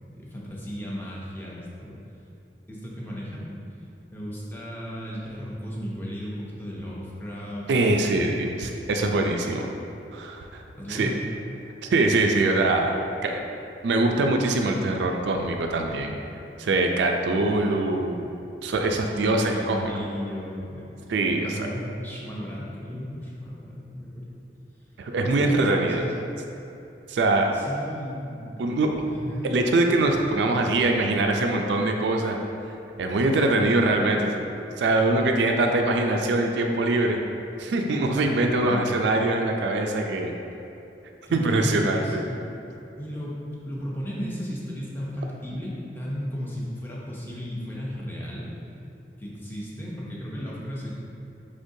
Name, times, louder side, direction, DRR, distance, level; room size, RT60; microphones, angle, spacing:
voice 1, 0.1-2.0 2.7-3.5 4.1-8.5 8.8-8.9 10.8-11.3 17.5-18.1 19.2-20.9 21.2-24.3 25.3-26.1 27.5-29.5 38.4-38.9 41.3-42.5 43.0-48.5 49.2-50.9, equal, 10° left, -5 dB, 0.6 m, -35 dB
voice 2, 7.7-9.7 10.1-10.6 10.9-11.1 11.8-13.4 13.8-16.1 16.6-18.3 18.6-19.9 21.1-21.7 25.0-26.0 27.1-27.5 28.6-28.9 29.5-32.4 33.0-34.4 34.8-37.2 37.6-40.3 41.3-42.2, right 2 dB, 80° right, 3 dB, 0.4 m, -23 dB
5.1 x 3.5 x 2.7 m, 2.8 s
head